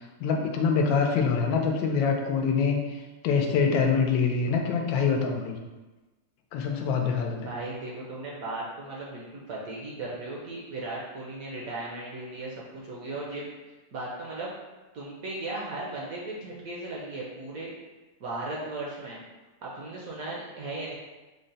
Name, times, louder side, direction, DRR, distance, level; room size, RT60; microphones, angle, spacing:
voice 1, 0.2-2.8 3.2-5.6 6.5-7.5, left 5 dB, 90° left, 2 dB, 1.3 m, -25 dB
voice 2, 7.4-13.5 13.9-14.5 14.9-17.7 18.2-19.2 19.6-20.9, right 2 dB, 65° right, -4 dB, 0.9 m, -36 dB
3.8 x 2.1 x 3.9 m, 1.2 s
omnidirectional pair, 2.0 m